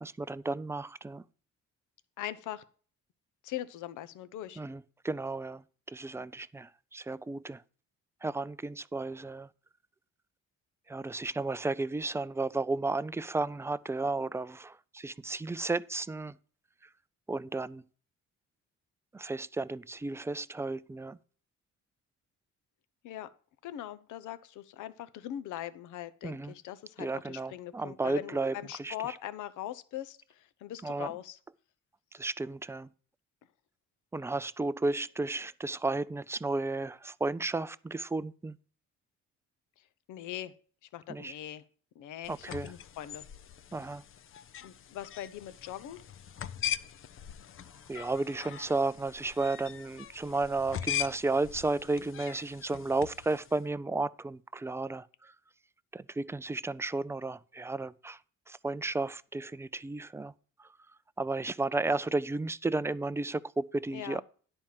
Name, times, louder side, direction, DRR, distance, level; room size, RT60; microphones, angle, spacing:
voice 1, 0.0-1.2 4.6-5.6 5.9-7.6 8.2-9.5 10.9-16.4 17.3-17.8 19.1-21.2 26.2-26.5 27.0-28.9 30.8-31.1 32.1-32.9 34.1-38.6 41.1-41.3 42.3-42.7 43.7-44.0 47.9-55.3 55.9-58.2 58.5-60.3 61.2-64.2, right 3 dB, 10° right, 0.4 m, -33 dB
voice 2, 2.2-2.6 3.4-4.6 23.0-23.3 23.6-31.4 40.1-40.5 40.9-41.6 42.0-43.2 44.6-46.0 63.9-64.2, left 12 dB, 80° left, 0.7 m, -41 dB
sound 1, 42.2-53.6, left 10 dB, 45° left, 0.5 m, -41 dB
10.5 x 4.5 x 7.4 m
cardioid pair, 90°, 30 cm